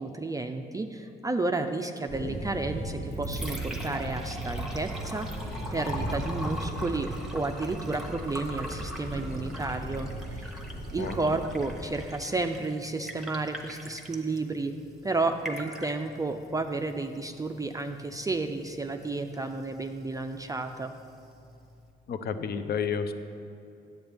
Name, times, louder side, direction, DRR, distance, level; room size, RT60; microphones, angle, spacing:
voice 1, 0.0-5.3 5.7-10.5 10.9-14.7 15.0-21.0, right 3 dB, 15° right, 6 dB, 0.4 m, -32 dB
Thunder, 2.1-12.1, right 1 dB, 85° left, 2.2 m, -37 dB
Liquid, 2.9-21.9, equal, ahead, 1.0 m, -43 dB
voice 2, 11.0-11.4 22.1-23.1, left 6 dB, 55° left, 10 dB, 0.6 m, -31 dB
10.5 x 8.0 x 3.4 m, 2.6 s
cardioid pair, 90°, 20 cm